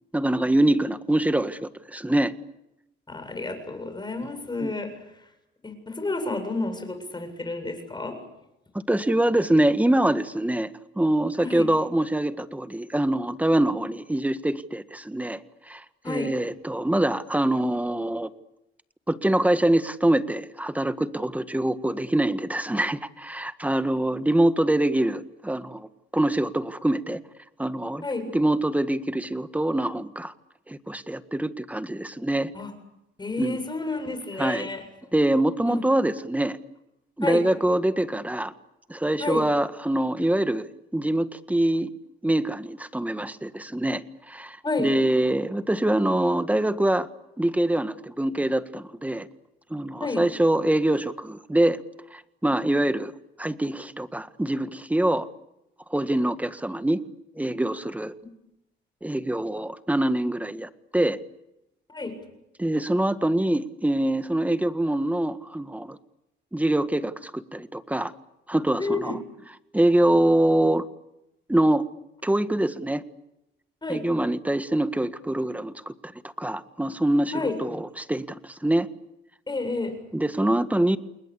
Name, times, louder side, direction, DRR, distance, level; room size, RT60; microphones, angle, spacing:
voice 1, 0.1-2.3 4.6-4.7 8.7-10.7 11.0-18.3 19.1-25.9 26.1-27.2 27.6-28.1 28.3-30.3 30.7-32.5 33.4-33.6 34.4-34.7 35.1-36.6 37.2-38.5 38.9-40.7 40.9-41.9 42.2-47.1 47.4-49.3 49.7-51.8 52.1-53.1 53.4-55.3 55.9-57.0 57.4-58.1 59.0-61.2 62.6-66.0 66.5-68.1 68.5-69.2 69.7-70.8 71.5-71.8 72.2-73.0 73.9-76.1 76.4-77.3 77.6-78.9 80.1-81.0, right 1 dB, 5° right, 11 dB, 1.7 m, -24 dB
voice 2, 3.1-4.9 5.6-8.2 11.4-11.7 16.0-16.3 28.0-28.2 32.5-32.7 33.2-34.8 35.7-35.8 37.2-37.4 39.2-39.4 44.6-44.9 50.0-50.2 61.9-62.1 68.8-69.2 73.8-74.0 77.3-77.6 79.5-79.9, left 3 dB, 20° left, 7 dB, 7.7 m, -30 dB
29.5 x 21.0 x 8.5 m, 0.89 s
cardioid pair, 90°, 20 cm